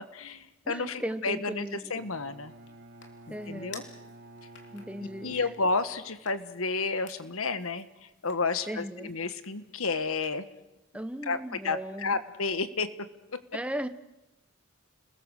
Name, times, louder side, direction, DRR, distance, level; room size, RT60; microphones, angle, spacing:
voice 1, 0.0-2.5 3.3-3.8 5.2-10.5 11.3-12.9, left 4 dB, 75° left, 12 dB, 1.5 m, -31 dB
voice 2, 0.6-2.0 3.3-3.9 4.7-5.4 8.7-9.1 10.9-12.2 13.5-13.9, right 1 dB, 5° right, 10 dB, 1.1 m, -37 dB
sound 1, 2.0-10.7, left 5 dB, 55° left, 3.5 m, -55 dB
Bowed string instrument, 2.0-6.2, right 1 dB, 50° right, 2.2 m, -50 dB
30.0 x 21.0 x 6.5 m, 0.99 s
head